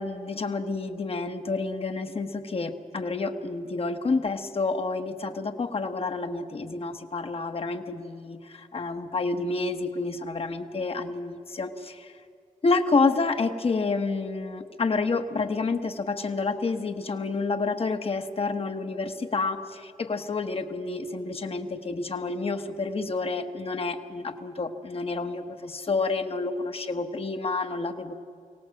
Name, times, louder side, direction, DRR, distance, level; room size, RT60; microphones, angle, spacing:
voice 1, 0.0-11.9 12.6-28.1, left 3 dB, 45° left, 7 dB, 1.2 m, -29 dB
23.5 x 17.5 x 7.7 m, 2.4 s
wide cardioid pair, 145°, 14 cm